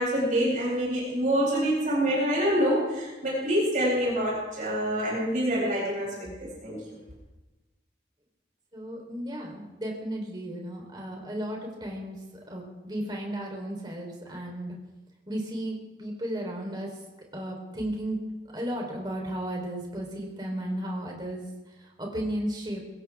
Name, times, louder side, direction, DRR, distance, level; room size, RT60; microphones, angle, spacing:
voice 1, 0.0-6.8, equal, 45° right, -6 dB, 7.9 m, -26 dB
voice 2, 8.7-12.2 12.5-14.8 15.3-16.9 17.3-18.2 18.5-21.4 22.0-22.8, right 1 dB, 25° right, 0 dB, 3.9 m, -34 dB
23.0 x 16.5 x 3.6 m, 1.1 s
head